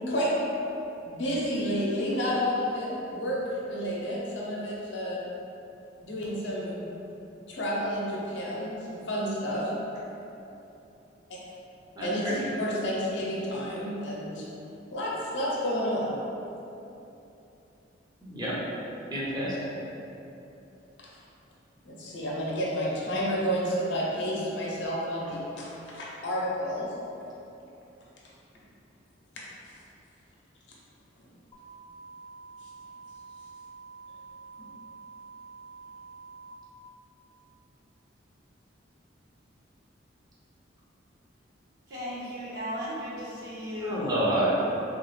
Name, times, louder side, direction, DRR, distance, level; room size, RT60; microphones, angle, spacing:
voice 1, 1.0-3.4 3.7-5.2 6.0-6.9 7.5-9.7 11.3-11.4 12.0-14.4 14.9-16.2 21.8-26.9 34.6-34.7, equal, 70° left, -5 dB, 0.7 m, -30 dB
voice 2, 11.9-12.5 18.2-18.6 19.1-19.6 43.8-44.5, right 1 dB, 20° right, -8 dB, 0.7 m, -28 dB
sound 1, 31.5-36.5, right 4 dB, 20° left, 0.3 m, -48 dB
voice 3, 41.9-44.2, left 1 dB, 65° right, -10 dB, 1.2 m, -36 dB
3.5 x 2.3 x 3.2 m, 2.9 s
head